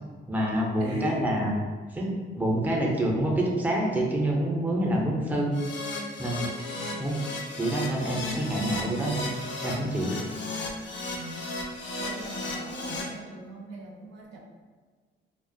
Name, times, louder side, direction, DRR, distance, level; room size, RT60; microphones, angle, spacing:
voice 1, 0.3-1.5 1.9-5.6 6.2-6.5 7.0-7.2 7.6-9.3 9.6-10.2, right 1 dB, 10° right, -2 dB, 0.5 m, -27 dB
voice 2, 0.8-1.3 6.7-7.2 11.2-11.4 12.0-14.4, equal, 80° right, -1 dB, 0.6 m, -40 dB
Keyboard (musical), 5.5-13.0, left 2 dB, 70° left, 0.5 m, -35 dB
2.3 x 2.1 x 2.6 m, 1.5 s
cardioid pair, 90°, 20 cm